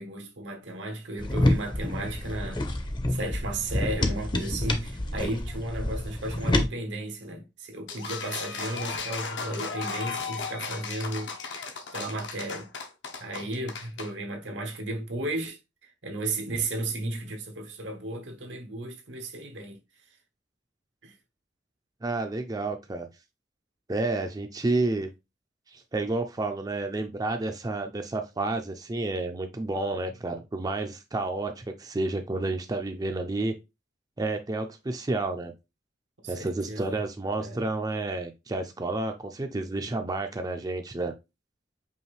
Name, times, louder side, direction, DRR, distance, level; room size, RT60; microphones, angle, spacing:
voice 1, 0.0-2.7 3.1-11.3 11.9-12.7 13.2-19.8 21.0-21.2 36.2-37.0 37.4-37.7, right 2 dB, 85° right, 1.1 m, -34 dB
sound 1, 1.2-6.7, left 1 dB, 25° left, 0.6 m, -28 dB
sound 2, 7.9-14.1, left 5 dB, 75° left, 0.9 m, -35 dB
voice 2, 22.0-23.1 23.9-25.1 25.7-33.5 34.2-35.5 36.3-41.1, right 2 dB, 20° right, 0.4 m, -30 dB
5.4 x 2.5 x 3.2 m
head